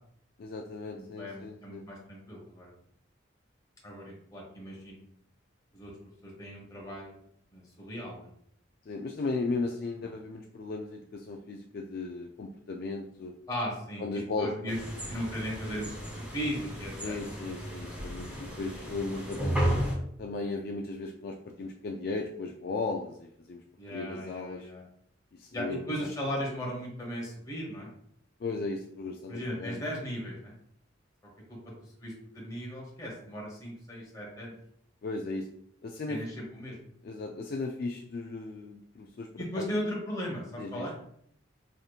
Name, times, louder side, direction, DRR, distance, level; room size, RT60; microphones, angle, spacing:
voice 1, 0.4-1.8 8.9-13.3 14.0-14.5 17.0-19.6 20.2-24.7 25.3-26.1 28.4-29.9 35.0-35.5 35.8-36.2 37.0-39.7 40.6-40.9, left 3 dB, 50° left, 2 dB, 0.3 m, -36 dB
voice 2, 1.0-2.7 3.8-5.0 5.7-5.9 6.2-7.2 7.5-8.3 13.5-14.8 15.1-17.1 23.8-24.8 25.5-27.9 29.3-30.5 31.5-31.6 32.0-34.6 36.1-36.8 39.4-40.9, equal, 20° left, -3 dB, 1.2 m, -37 dB
sound 1, 14.7-19.9, right 1 dB, 10° right, 1.2 m, -34 dB
5.0 x 2.8 x 2.4 m, 0.68 s
head